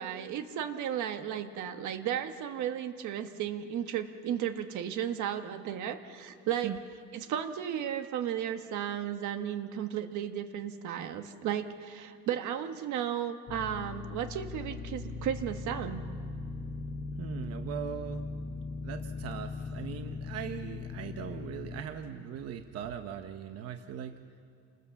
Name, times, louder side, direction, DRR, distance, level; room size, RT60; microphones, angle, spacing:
voice 1, 0.0-6.7 7.1-16.0, right 9 dB, 80° right, 7 dB, 1.5 m, -34 dB
sound 1, 13.5-21.8, left 3 dB, 30° left, 1.0 m, -39 dB
voice 2, 17.2-18.2 18.8-24.2, right 9 dB, 55° right, 7 dB, 1.0 m, -40 dB
28.0 x 20.0 x 7.2 m, 2.3 s
cardioid pair, 175°, 29 cm